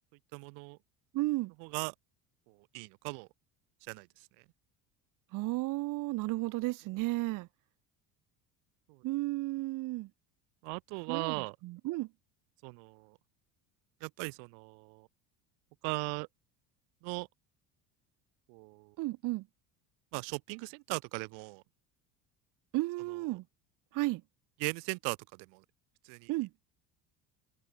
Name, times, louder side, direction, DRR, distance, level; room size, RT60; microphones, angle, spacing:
voice 1, 0.3-0.8 1.6-1.9 2.5-3.3 3.8-4.3 8.9-9.0 10.6-11.6 12.6-13.2 14.0-15.1 15.8-16.3 17.0-17.3 18.5-19.0 20.1-21.6 24.6-25.6 26.0-26.3, right 38 dB, 85° right, 1.7 m, -38 dB
voice 2, 1.1-1.5 5.3-7.5 9.0-10.1 11.1-12.1 19.0-19.5 22.7-23.4 23.9-24.2 26.3-26.5, right 20 dB, 55° right, 1.8 m, -33 dB
cardioid pair, 160°, 38 cm